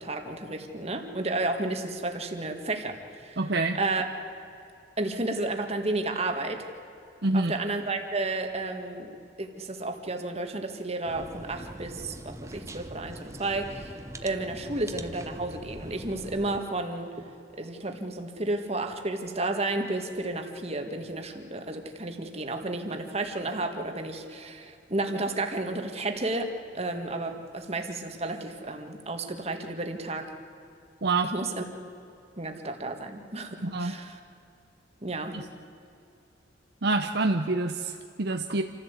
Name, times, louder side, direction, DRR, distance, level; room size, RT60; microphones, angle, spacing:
voice 1, 0.0-3.4 3.8-4.0 5.0-6.7 7.3-17.3 17.6-30.2 31.2-31.6 32.4-34.2 35.0-35.4, right 2 dB, 35° right, 5 dB, 1.8 m, -32 dB
voice 2, 3.4-3.8 7.2-7.5 31.0-31.3 33.6-34.0 35.3-35.4 36.8-38.6, right 3 dB, 60° right, 5 dB, 0.8 m, -26 dB
sound 1, 11.0-16.6, right 1 dB, 15° right, 1.0 m, -42 dB
27.5 x 15.0 x 8.2 m, 2.7 s
head